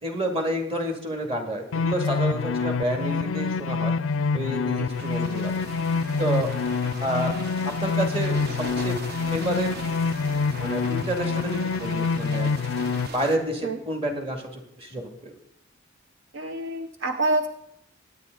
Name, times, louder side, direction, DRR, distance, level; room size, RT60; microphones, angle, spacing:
voice 1, 0.0-3.9 4.3-5.5 6.2-6.5 7.0-7.3 7.6-8.4 8.8-9.0 9.3-9.7 10.6-12.5 13.1-15.3, right 1 dB, 30° right, 4 dB, 2.3 m, -29 dB
sound 1, 1.7-13.1, left 4 dB, 80° left, 0.4 m, -26 dB
sound 2, 4.9-13.4, right 2 dB, 55° right, 1.3 m, -40 dB
voice 2, 16.3-17.5, right 2 dB, 70° right, 6 dB, 0.9 m, -27 dB
23.0 x 9.3 x 3.9 m, 0.72 s
head